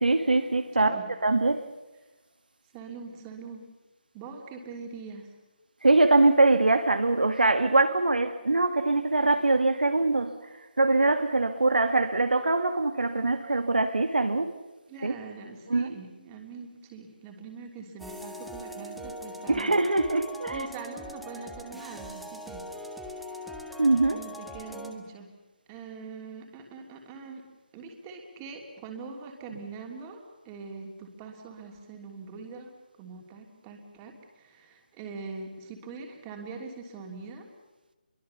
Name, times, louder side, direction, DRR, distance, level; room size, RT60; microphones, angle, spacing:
voice 1, 0.0-1.6 5.8-14.5 15.0-15.1 15.7-16.0 19.5-20.7 23.8-24.2, right 2 dB, 80° right, 1.8 m, -23 dB
voice 2, 2.7-3.7 4.1-5.3 14.9-19.8 20.5-23.7 24.1-25.3 25.7-27.5 27.7-37.5, right 4 dB, 15° right, 3.2 m, -43 dB
sound 1, 18.0-24.9, left 1 dB, ahead, 1.4 m, -41 dB
26.5 x 23.5 x 7.1 m
figure-of-eight pair, 155°, 5 cm